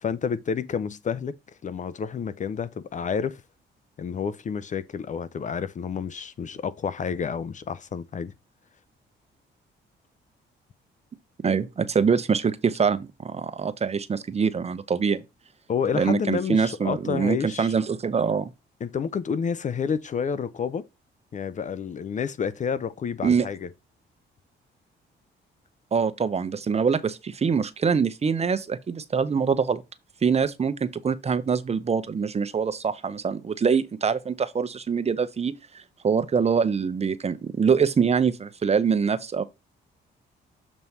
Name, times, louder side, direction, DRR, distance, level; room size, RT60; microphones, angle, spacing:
voice 1, 0.0-1.4 1.6-3.4 4.0-8.3 15.7-17.7 18.8-20.9 21.3-23.7, left 6 dB, 40° left, 0.5 m, -29 dB
voice 2, 11.4-15.2 15.9-18.5 23.2-23.5 25.9-29.8 30.2-39.4, right 6 dB, 30° right, 0.7 m, -24 dB
7.1 x 3.1 x 5.4 m
cardioid pair, 90°, 20 cm